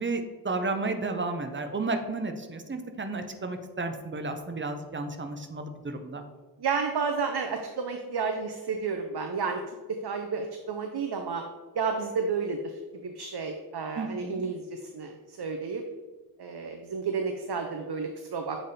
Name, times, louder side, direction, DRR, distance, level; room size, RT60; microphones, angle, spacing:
voice 1, 0.0-6.2 14.0-14.4, right 3 dB, 30° right, 6 dB, 0.6 m, -32 dB
voice 2, 6.6-11.4 11.7-15.8 16.4-18.6, right 5 dB, 80° right, 4 dB, 0.6 m, -31 dB
7.6 x 3.4 x 4.1 m, 1.3 s
wide cardioid pair, 65°, 39 cm